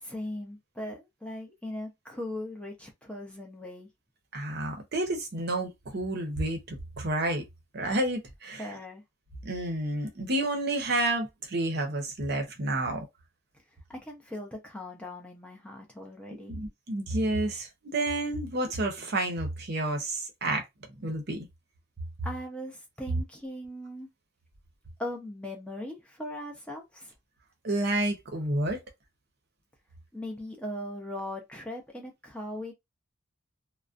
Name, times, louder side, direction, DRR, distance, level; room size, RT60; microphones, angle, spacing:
voice 1, 0.0-3.9 8.6-9.0 13.9-16.6 22.2-24.1 25.0-27.1 30.1-32.7, left 1 dB, 5° left, 0.5 m, -39 dB
voice 2, 4.3-7.4 7.7-8.7 9.4-13.1 16.3-20.6 21.0-21.5 27.6-28.8, right 1 dB, 50° right, 0.7 m, -30 dB
2.4 x 2.1 x 2.5 m
head